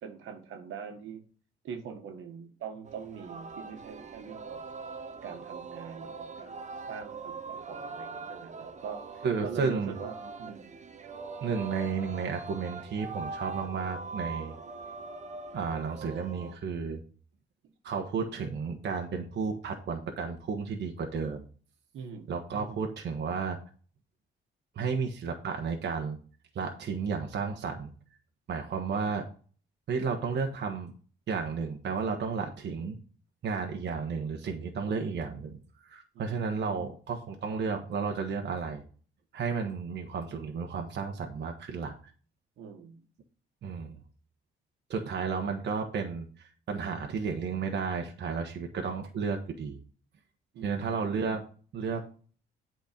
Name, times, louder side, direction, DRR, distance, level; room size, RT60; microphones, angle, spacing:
voice 1, 0.0-1.2 1.6-4.6 5.2-6.6 6.9-10.7 21.9-22.3 36.1-36.4 42.6-43.0 50.5-51.0, right 6 dB, 80° right, 5 dB, 1.5 m, -43 dB
Singing, 2.9-16.6, right 4 dB, 35° right, 0.9 m, -42 dB
voice 2, 9.2-9.9 11.4-14.6 15.5-17.0 17.8-21.4 22.3-23.6 24.7-26.2 26.5-27.9 28.5-29.2 29.9-30.9 31.3-33.0 33.4-38.8 39.3-41.9 43.6-44.0 44.9-49.8 50.6-51.4 51.7-52.0, right 5 dB, 60° right, 3 dB, 1.2 m, -32 dB
8.2 x 4.5 x 5.1 m, 0.41 s
cardioid pair, 90°, 20 cm